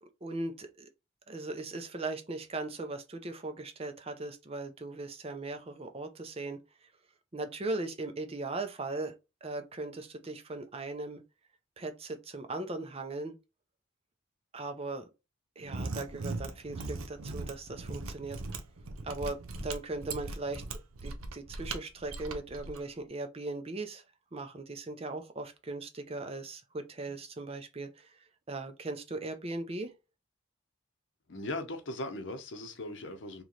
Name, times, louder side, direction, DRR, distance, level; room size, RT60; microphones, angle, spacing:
voice 1, 0.0-0.9 1.3-6.9 7.3-11.2 11.8-13.3 14.5-15.1 15.6-18.4 19.0-19.4 19.6-24.0 24.3-28.2 28.5-29.9, right 2 dB, 30° right, 0.5 m, -39 dB
Mechanisms, 15.6-22.8, right 3 dB, 85° right, 0.7 m, -39 dB
voice 2, 31.3-33.4, left 1 dB, 60° left, 0.7 m, -38 dB
3.1 x 3.0 x 3.8 m
head